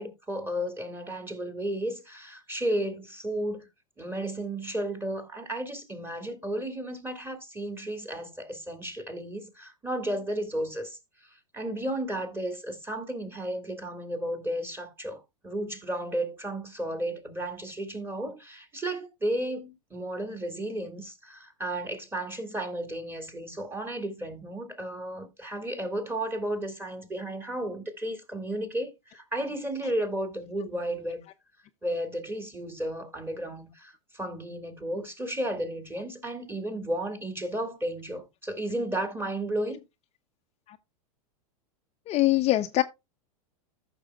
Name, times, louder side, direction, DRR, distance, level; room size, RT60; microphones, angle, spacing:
voice 1, 0.0-3.7 4.0-31.2 31.8-39.8, right 1 dB, 10° right, 2.0 m, -33 dB
voice 2, 42.1-42.8, left 16 dB, 35° left, 0.6 m, -22 dB
14.5 x 6.1 x 2.3 m
hypercardioid pair, 100°, 19 cm